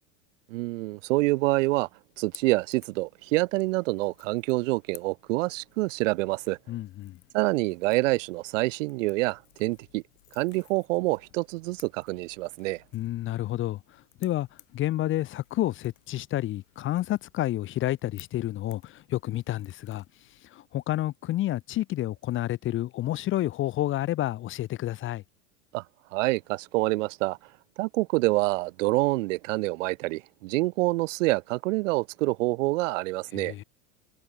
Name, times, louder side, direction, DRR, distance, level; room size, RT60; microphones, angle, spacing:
voice 1, 0.5-1.9 2.2-6.6 7.3-10.0 10.3-12.8 25.7-25.8 26.1-27.4 27.8-33.5, right 21 dB, 70° right, 0.6 m, -27 dB
Crackle / Crack, 2.1-20.4, left 18 dB, 75° left, 4.0 m, -57 dB
voice 2, 6.7-7.2 12.9-13.8 14.2-14.5 14.7-20.0 20.4-25.2 33.3-33.6, left 14 dB, 30° left, 0.7 m, -29 dB
hypercardioid pair, 105°, 39 cm